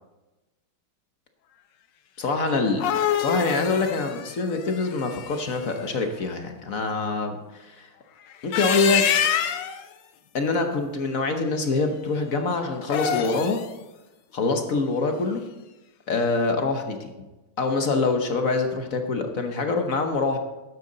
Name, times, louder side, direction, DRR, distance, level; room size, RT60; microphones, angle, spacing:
voice 1, 2.2-2.8 3.2-7.9 8.4-9.0 10.3-13.6 14.3-15.4 16.1-17.1 17.6-20.4, left 3 dB, 50° left, 5 dB, 1.2 m, -25 dB
sound 1, 2.5-5.6 8.3-9.8 12.8-13.7, left 9 dB, 70° left, 1.3 m, -26 dB
12.5 x 9.5 x 4.0 m, 1.1 s
omnidirectional pair, 2.2 m